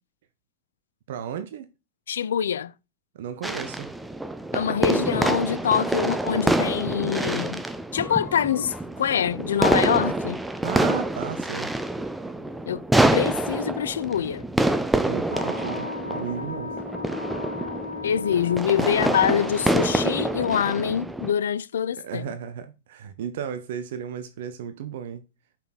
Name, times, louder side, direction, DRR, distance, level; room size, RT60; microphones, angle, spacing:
voice 1, 1.1-1.7 3.1-3.9 10.6-11.7 15.0-16.8 22.0-25.2, right 8 dB, 55° right, 0.7 m, -34 dB
voice 2, 2.1-2.7 4.5-7.6 7.9-10.4 12.7-12.8 13.1-14.4 18.0-22.2, left 8 dB, 65° left, 0.4 m, -25 dB
sound 1, 3.4-21.3, right 1 dB, 5° right, 0.6 m, -26 dB
Wind instrument woodwind instrument, 15.3-20.4, left 4 dB, 85° left, 1.0 m, -36 dB
5.5 x 4.5 x 5.8 m
figure-of-eight pair, 90°, 0 cm